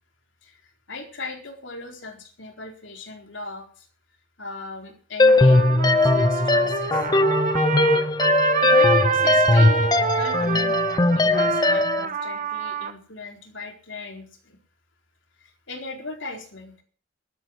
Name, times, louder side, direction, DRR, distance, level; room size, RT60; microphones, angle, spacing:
voice 1, 0.9-3.9 4.4-7.0 8.6-10.7 11.1-14.6 15.4-16.7, left 3 dB, 65° left, 3 dB, 4.3 m, -38 dB
sound 1, 5.2-12.1, left 2 dB, 20° left, 0.7 m, -19 dB
Trumpet, 5.3-12.9, right 5 dB, 45° right, 1.6 m, -26 dB
13.0 x 12.5 x 6.4 m, 0.42 s
head